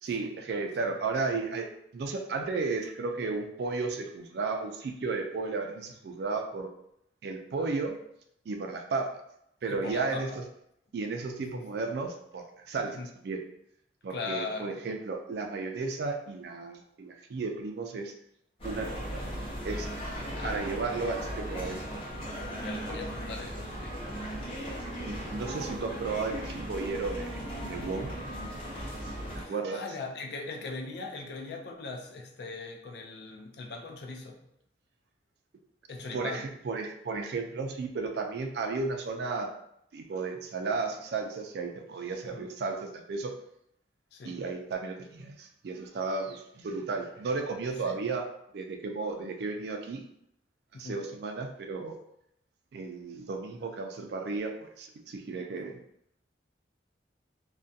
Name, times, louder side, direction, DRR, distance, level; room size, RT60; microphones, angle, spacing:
voice 1, 0.0-6.7 7.2-8.0 8.5-9.1 9.6-10.4 10.9-13.0 13.2-13.4 14.0-18.1 18.6-19.2 19.6-19.9 20.4-21.8 24.8-27.4 27.7-28.1 29.4-29.8 36.1-39.5 39.9-43.3 44.2-48.3 48.5-50.0 50.8-51.9 52.7-55.8, right 4 dB, 65° right, 4 dB, 0.3 m, -34 dB
voice 2, 9.7-10.4 11.5-11.7 12.8-13.1 14.1-14.9 20.4-20.8 22.5-24.0 29.4-34.4 35.9-36.5 42.3-42.5 44.1-44.4 47.8-48.0 50.7-51.0, left 3 dB, 65° left, 2 dB, 0.4 m, -40 dB
sound 1, 18.6-29.4, equal, 30° left, 0.7 m, -37 dB
2.4 x 2.1 x 2.6 m, 0.75 s
head